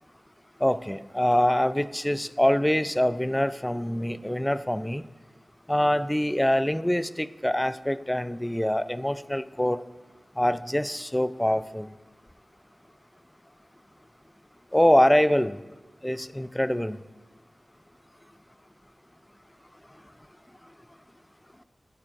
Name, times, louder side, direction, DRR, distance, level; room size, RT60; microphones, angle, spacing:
voice 1, 0.6-5.0 5.7-9.8 10.4-11.9 14.7-15.6 16.0-17.0, left 1 dB, 10° left, 15 dB, 0.3 m, -24 dB
11.5 x 9.2 x 2.5 m, 1.2 s
cardioid pair, 40°, 0 cm